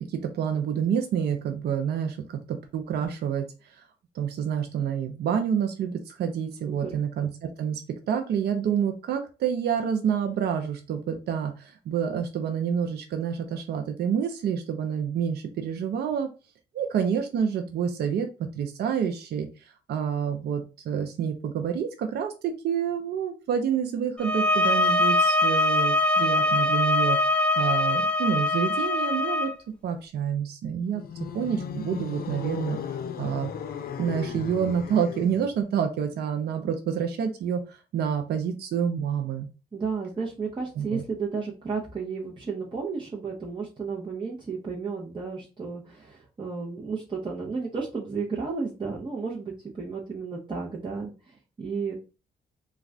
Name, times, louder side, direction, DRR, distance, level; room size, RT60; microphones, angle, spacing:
voice 1, 0.1-3.4 3.8-3.9 4.1-7.3 7.6-7.8 8.1-16.3 16.7-19.5 19.9-29.5 29.8-31.0 31.3-32.8 33.2-33.5 34.0-39.5 40.8-41.0, right 7 dB, 65° right, 5 dB, 0.5 m, -28 dB
sound 1, 24.2-29.5, left 2 dB, 5° left, 0.7 m, -23 dB
sound 2, 30.9-35.5, left 8 dB, 55° left, 0.5 m, -36 dB
voice 2, 39.7-51.9, right 5 dB, 25° right, -4 dB, 0.9 m, -33 dB
2.3 x 2.3 x 3.3 m, 0.32 s
supercardioid pair, 60°, 18 cm